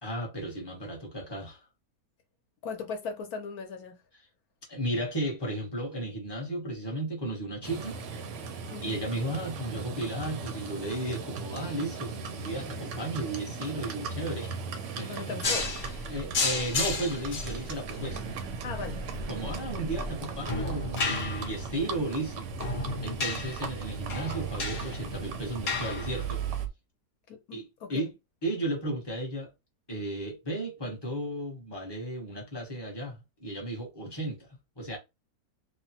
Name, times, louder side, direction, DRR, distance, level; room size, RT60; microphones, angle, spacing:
voice 1, 0.0-1.6 4.7-8.0 8.8-14.5 15.0-15.3 16.1-18.4 18.8-19.0 19.3-22.5 23.0-26.4 27.5-27.6 27.9-28.1 28.4-29.5 29.9-34.4 34.8-35.0, right 1 dB, 20° left, 0.6 m, -34 dB
voice 2, 2.6-4.0 8.7-9.0 15.1-15.7 18.6-19.0 21.0-21.1 27.3-28.0, left 5 dB, 70° left, 1.1 m, -38 dB
Livestock farm animals working animals, 7.6-26.7, right 4 dB, 65° right, 0.7 m, -38 dB
sound 1, 15.4-26.7, left 2 dB, 50° left, 0.8 m, -33 dB
2.9 x 2.1 x 2.8 m
omnidirectional pair, 1.8 m